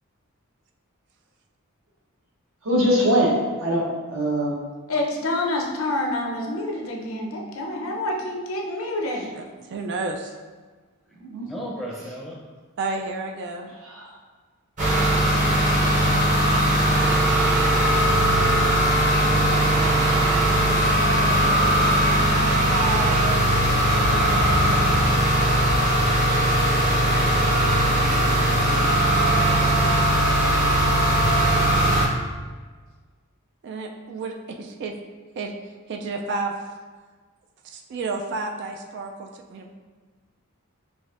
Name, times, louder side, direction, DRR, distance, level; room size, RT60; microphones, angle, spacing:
voice 1, 2.6-4.6 11.2-11.5 13.8-14.1 17.4-17.6, equal, 70° right, -3 dB, 1.0 m, -24 dB
voice 2, 4.9-9.3, left 1 dB, 70° left, -1 dB, 0.7 m, -27 dB
voice 3, 9.3-10.4 12.8-13.7 21.0-21.7 22.1-25.3 33.6-35.0 35.4-35.5 35.9-36.5 37.6-39.7, right 3 dB, 55° right, 3 dB, 0.3 m, -32 dB
voice 4, 11.4-12.4, equal, ahead, -4 dB, 0.6 m, -38 dB
sound 1, 14.8-32.1, right 1 dB, 35° right, 0.8 m, -19 dB
6.0 x 2.5 x 2.5 m, 1.4 s
head